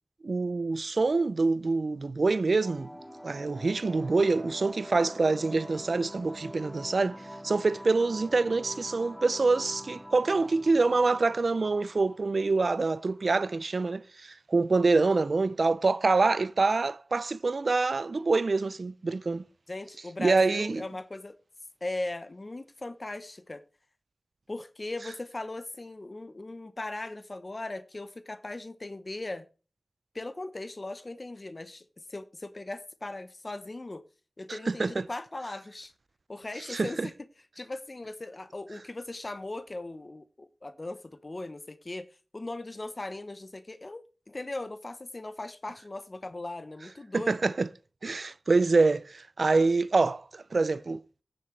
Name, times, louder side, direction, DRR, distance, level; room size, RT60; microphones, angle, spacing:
voice 1, 0.2-2.9 3.2-7.2 7.4-19.5 20.2-20.8 34.5-35.1 36.7-37.1 47.1-47.7 48.0-51.0, right 3 dB, 70° right, 0.5 m, -26 dB
sound 1, 2.6-13.6, equal, ahead, 1.6 m, -45 dB
voice 2, 19.7-21.4 21.8-23.6 24.5-29.5 30.1-34.0 34.4-35.9 36.3-37.1 37.5-42.1 42.3-47.4, left 2 dB, 45° left, 0.9 m, -38 dB
15.5 x 7.1 x 3.3 m
cardioid pair, 45°, 0 cm